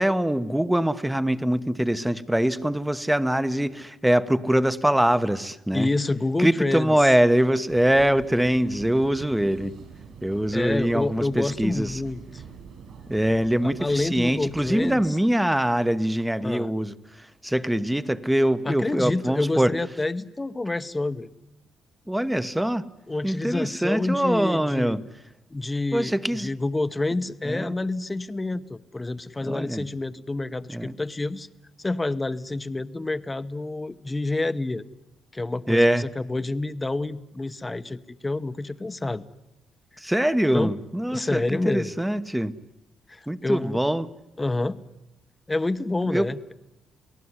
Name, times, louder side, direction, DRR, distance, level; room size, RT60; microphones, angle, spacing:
voice 1, 0.0-5.9 6.4-9.7 10.2-12.0 13.1-19.7 22.1-22.8 23.2-25.0 25.9-26.5 27.4-27.7 29.5-29.8 30.7-30.9 35.7-36.0 40.0-42.5 43.3-44.1 46.1-46.3, right 1 dB, 5° right, 13 dB, 1.1 m, -23 dB
voice 2, 5.7-6.9 10.5-12.4 13.8-15.0 16.4-16.7 18.6-21.3 23.1-25.0 25.5-26.1 26.4-31.5 31.8-34.8 35.3-39.2 40.5-40.7 41.1-41.9 43.1-43.8 44.4-44.8 45.5-46.5, left 2 dB, 20° left, 12 dB, 1.0 m, -28 dB
sound 1, 7.7-15.1, right 6 dB, 65° right, 7.3 m, -44 dB
29.0 x 18.5 x 9.8 m, 0.88 s
cardioid pair, 90°, 0 cm